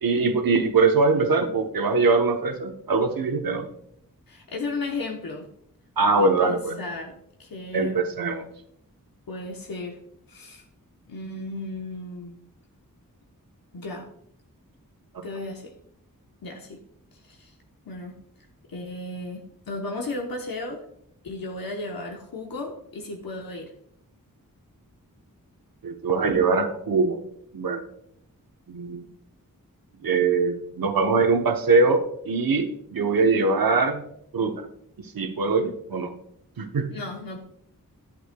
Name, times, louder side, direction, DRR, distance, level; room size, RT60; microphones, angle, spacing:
voice 1, 0.0-3.7 6.0-6.8 7.7-8.5 25.8-27.2 27.5-27.9 28.7-29.1 30.0-34.0 34.3-34.7 35.0-36.1 36.6-36.9, right 4 dB, 80° right, 6 dB, 0.9 m, -22 dB
voice 2, 4.3-5.5 6.1-7.1 7.4-8.0 9.3-10.0 10.3-10.6 11.1-12.4 13.7-14.1 15.2-15.7 16.4-16.8 17.2-17.5 17.9-18.2 18.7-20.8 21.2-23.7 36.9-37.4, left 2 dB, 80° left, 2 dB, 0.9 m, -34 dB
11.0 x 8.4 x 2.2 m, 0.72 s
wide cardioid pair, 95°, 35 cm